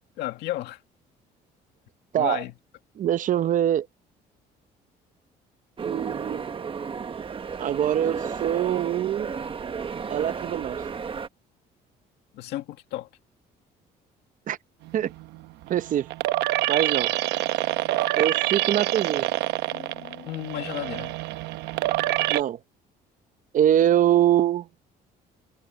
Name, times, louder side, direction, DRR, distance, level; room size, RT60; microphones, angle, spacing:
voice 1, 0.2-0.8 2.1-2.5 12.3-13.1 19.7-21.2, left 15 dB, 80° left, 2.1 m, -33 dB
voice 2, 3.0-3.9 5.8-6.7 7.6-9.3 10.1-10.8 14.5-14.6 14.9-15.1 15.7-16.1 16.7-17.1 18.1-19.3 22.3-22.6 23.5-24.7, right 11 dB, 50° right, 0.8 m, -23 dB
sound 1, 5.8-11.3, right 6 dB, 30° right, 1.3 m, -33 dB
sound 2, 14.9-22.4, right 16 dB, 85° right, 1.0 m, -26 dB
cardioid pair, 110°, 17 cm